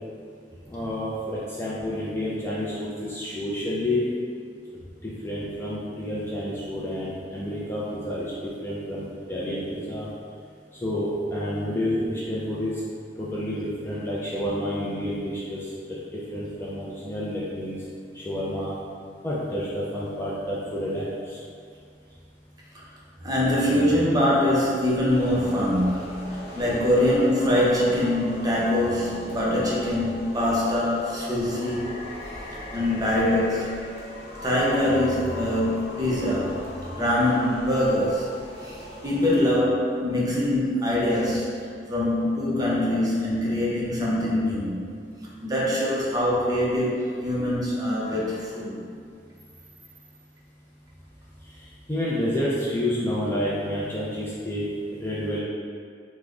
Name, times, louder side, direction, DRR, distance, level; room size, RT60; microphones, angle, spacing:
voice 1, 0.7-4.1 5.0-10.1 10.7-12.8 13.2-17.8 18.1-18.7 19.2-21.4 51.4-55.4, left 1 dB, 15° left, -7 dB, 0.4 m, -29 dB
voice 2, 23.2-31.9 32.3-32.4 32.7-33.9 34.4-36.6 36.9-38.3 38.6-38.8 39.0-44.8 45.4-48.8, left 1 dB, 20° right, -6 dB, 0.6 m, -23 dB
sound 1, 25.1-39.4, left 1 dB, 35° left, 0.8 m, -39 dB
3.4 x 2.1 x 3.6 m, 2.2 s
head